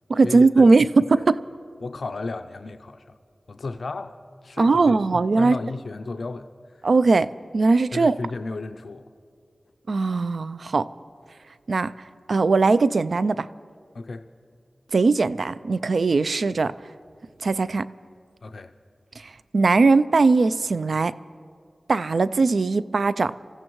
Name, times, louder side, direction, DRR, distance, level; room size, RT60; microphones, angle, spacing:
voice 1, 0.1-1.4 4.6-5.6 6.8-7.3 7.5-8.2 9.9-10.9 11.7-11.9 12.3-13.5 14.9-16.7 17.4-17.9 19.2-21.1 21.9-23.3, right 3 dB, 75° right, 16 dB, 0.3 m, -19 dB
voice 2, 1.8-3.2 3.5-4.2 4.4-5.0 5.4-6.8 7.9-9.1 13.9-14.3 18.4-18.7, left 3 dB, 75° left, 8 dB, 0.5 m, -33 dB
26.0 x 15.0 x 3.1 m, 2.2 s
wide cardioid pair, 70°, 0 cm